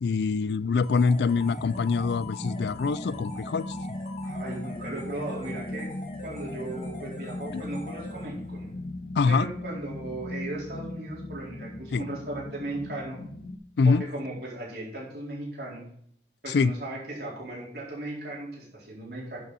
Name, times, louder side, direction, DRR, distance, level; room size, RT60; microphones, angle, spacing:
voice 1, 0.0-3.6 7.5-7.6 9.2-9.5 11.9-12.0 13.8-14.0 16.5-16.7, left 4 dB, 75° left, 18 dB, 0.4 m, -24 dB
sound 1, 0.8-8.6, left 2 dB, 40° left, 2.3 m, -44 dB
sound 2, 1.4-13.6, left 1 dB, 60° left, 1.0 m, -38 dB
voice 2, 4.2-5.9 6.2-8.7 9.2-13.2 13.8-15.9 16.4-19.4, right 1 dB, 70° right, -5 dB, 4.1 m, -37 dB
11.5 x 6.9 x 4.1 m, 0.67 s
head